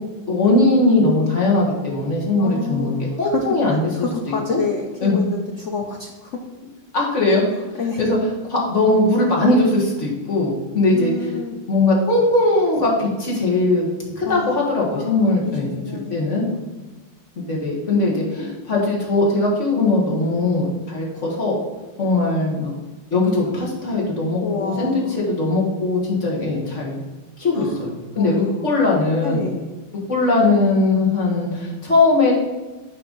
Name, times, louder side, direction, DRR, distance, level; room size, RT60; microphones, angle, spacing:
voice 1, 0.3-3.8 4.5-4.6 5.0-5.2 6.9-7.4 8.0-8.2 8.5-11.3 11.7-13.9 14.2-15.7 16.1-16.4 17.4-21.6 22.0-22.7 23.1-27.0 27.4-27.9 28.2-29.4 30.1-32.3, left 2 dB, 40° left, -4 dB, 1.9 m, -19 dB
voice 2, 2.4-3.5 3.9-6.4 7.8-8.1 10.9-11.6 14.2-14.5 14.9-16.7 24.4-25.1 27.5-27.8 28.1-28.7 29.2-29.6, left 4 dB, 70° left, 2 dB, 0.7 m, -29 dB
6.4 x 4.8 x 5.2 m, 1.2 s
omnidirectional pair, 2.0 m